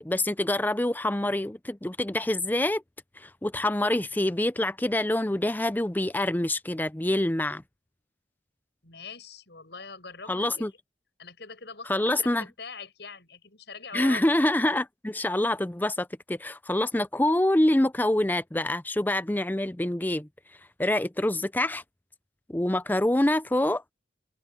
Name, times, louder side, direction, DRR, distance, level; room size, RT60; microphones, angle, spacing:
voice 1, 0.0-2.8 3.2-7.6 10.3-10.7 11.9-12.5 13.9-20.3 20.8-21.8 22.5-23.8, left 1 dB, 10° left, 0.5 m, -26 dB
voice 2, 8.8-10.8 11.2-14.3, left 4 dB, 65° left, 7.3 m, -43 dB
head